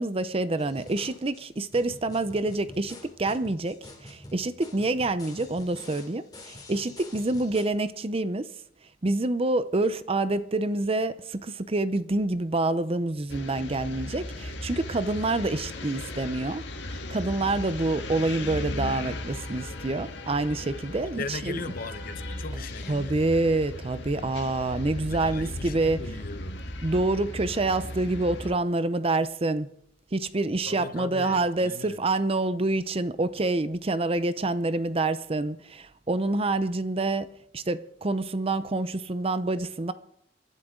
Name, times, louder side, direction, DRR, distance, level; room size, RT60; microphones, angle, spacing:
voice 1, 0.0-8.5 9.0-16.6 16.9-21.6 22.9-26.0 26.8-29.7 30.1-39.9, right 2 dB, 30° right, 0.6 m, -27 dB
sound 1, 0.6-7.6, left 1 dB, 20° left, 2.6 m, -47 dB
sound 2, 13.3-28.5, left 1 dB, 70° left, 1.7 m, -37 dB
voice 2, 21.0-23.1 25.1-26.6 30.6-32.1, left 3 dB, 50° left, 0.9 m, -38 dB
28.0 x 11.5 x 3.8 m
head